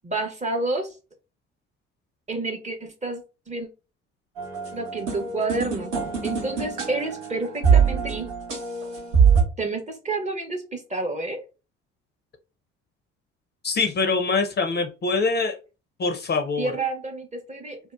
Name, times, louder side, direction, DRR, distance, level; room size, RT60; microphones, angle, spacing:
voice 1, 0.0-0.9 2.3-3.2 3.5-3.7 4.7-5.9 6.2-8.3 9.6-11.4 16.6-17.8, right 3 dB, 20° right, 5 dB, 0.7 m, -29 dB
sound 1, 4.4-9.4, right 6 dB, 80° right, 0.9 m, -23 dB
voice 2, 13.6-15.6 16.0-16.7, left 4 dB, 30° left, 5 dB, 0.5 m, -24 dB
2.8 x 2.1 x 2.3 m, 0.31 s
hypercardioid pair, 50°, 35 cm